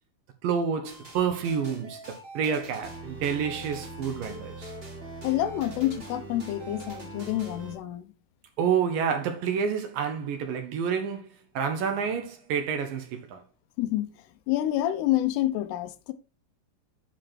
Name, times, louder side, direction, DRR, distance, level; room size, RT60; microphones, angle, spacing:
voice 1, 0.4-4.7 8.6-11.3 11.5-13.4, right 7 dB, 70° right, 2.4 m, -29 dB
sound 1, 0.8-7.8, right 2 dB, 20° right, 1.5 m, -42 dB
voice 2, 5.2-8.0 13.8-14.1 14.5-16.1, left 13 dB, 85° left, 2.8 m, -28 dB
9.0 x 5.2 x 4.4 m
omnidirectional pair, 4.6 m